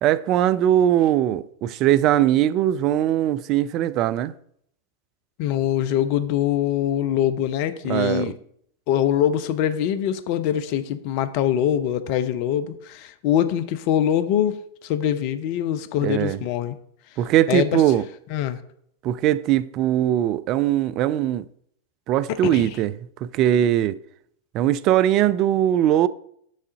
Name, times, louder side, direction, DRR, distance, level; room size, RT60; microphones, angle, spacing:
voice 1, 0.0-4.3 7.8-8.3 16.0-16.4 17.2-18.0 19.0-21.5 22.1-22.9 23.2-24.0 24.5-26.1, right 12 dB, 40° right, 0.3 m, -20 dB
voice 2, 5.4-8.3 8.9-16.8 17.5-17.8 18.3-18.6 22.3-22.7, left 10 dB, 45° left, 0.6 m, -23 dB
6.4 x 3.7 x 5.4 m
figure-of-eight pair, 90°, 0 cm